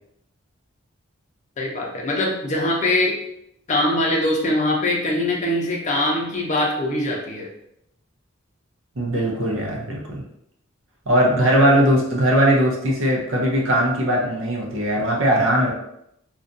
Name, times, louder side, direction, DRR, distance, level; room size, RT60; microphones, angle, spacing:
voice 1, 1.6-3.2 3.7-7.5 11.4-11.8, left 1 dB, 40° left, -1 dB, 0.5 m, -22 dB
voice 2, 9.0-10.2 11.1-15.7, equal, 80° right, -2 dB, 0.7 m, -19 dB
2.4 x 2.2 x 2.6 m, 0.78 s
head